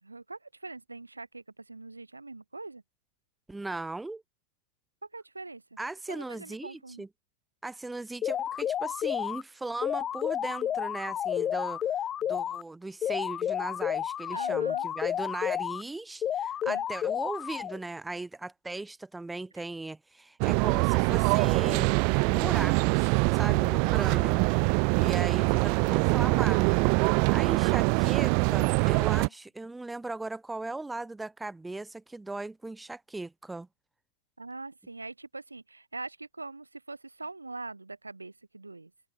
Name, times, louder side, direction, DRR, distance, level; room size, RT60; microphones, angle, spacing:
voice 1, 0.0-2.8 5.0-5.8 6.1-7.0 14.3-14.9 16.7-16.8 19.6-19.7 34.4-38.9, right 3 dB, 80° right, 3.4 m, -43 dB
voice 2, 3.5-4.2 5.8-7.1 7.6-11.9 12.3-21.9 22.3-24.4 24.9-33.7, right 2 dB, 5° right, 4.6 m, -38 dB
sound 1, 8.2-9.4 9.8-12.6 13.0-15.8 16.2-17.8, left 10 dB, 25° left, 1.5 m, -31 dB
sound 2, 20.4-29.3, right 39 dB, 45° right, 0.5 m, -24 dB
open air
figure-of-eight pair, 90°, 0 cm